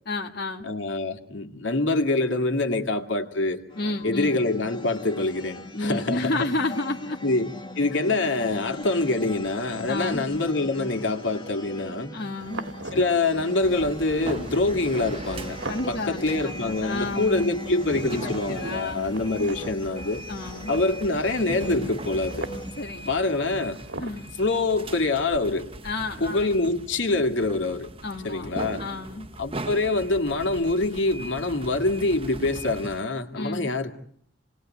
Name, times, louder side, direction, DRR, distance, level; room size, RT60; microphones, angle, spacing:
voice 1, 0.1-0.6 3.8-4.4 5.7-7.2 8.8-8.9 9.9-10.3 12.1-12.7 15.7-17.5 18.0-19.0 20.3-20.7 22.8-23.1 24.0-24.3 25.8-26.5 28.0-28.5 28.8-29.3 33.4-33.8, left 2 dB, 55° left, 1 dB, 1.9 m, -31 dB
voice 2, 0.6-3.6 4.0-6.4 7.2-12.2 12.9-15.6 15.9-20.2 20.7-22.5 23.1-23.8 24.2-25.7 26.2-27.9 28.2-28.8 29.4-33.9, left 2 dB, 80° left, 5 dB, 2.4 m, -25 dB
sound 1, 3.7-22.8, left 1 dB, 25° left, 2.0 m, -41 dB
sound 2, 12.4-24.1, right 2 dB, 85° right, 2.1 m, -42 dB
sound 3, 13.6-33.0, right 2 dB, 30° right, 1.0 m, -39 dB
28.5 x 20.0 x 9.1 m, 0.66 s
head